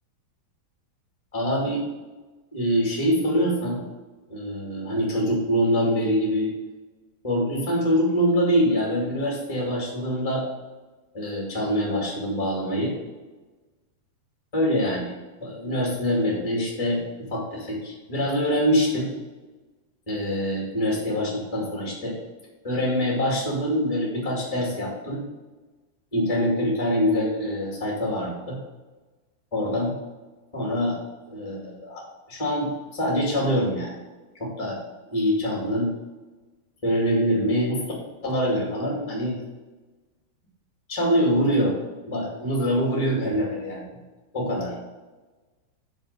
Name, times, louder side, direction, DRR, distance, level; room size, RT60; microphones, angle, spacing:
voice 1, 1.3-1.8 2.5-3.8 4.3-6.5 7.2-10.4 11.1-12.9 14.5-15.1 15.4-19.1 20.1-22.1 22.6-25.2 26.1-28.6 29.5-29.9 30.5-31.0 31.3-32.0 32.3-33.9 34.4-34.8 35.1-35.9 36.8-37.8 38.2-39.4 40.9-41.7 42.1-43.9 44.3-44.7, equal, 70° left, -3 dB, 0.3 m, -24 dB
10.5 x 3.6 x 6.7 m, 1.2 s
omnidirectional pair, 5.2 m